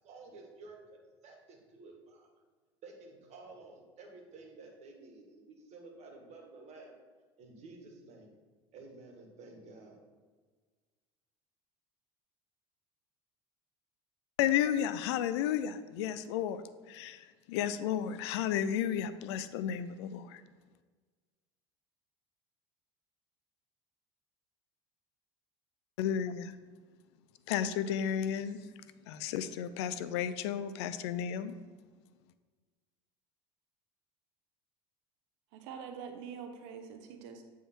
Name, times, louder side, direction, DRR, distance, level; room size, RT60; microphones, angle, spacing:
voice 1, 0.0-2.3 2.8-6.9 7.4-8.3 8.7-10.0, right 3 dB, 50° right, 1 dB, 1.6 m, -52 dB
voice 2, 14.4-20.4 26.0-26.6 27.5-28.6 29.1-31.6, left 9 dB, 85° left, 13 dB, 0.4 m, -33 dB
voice 3, 35.5-37.4, right 7 dB, 80° right, 6 dB, 0.7 m, -45 dB
8.5 x 3.5 x 4.4 m, 1.4 s
supercardioid pair, 90°, 14 cm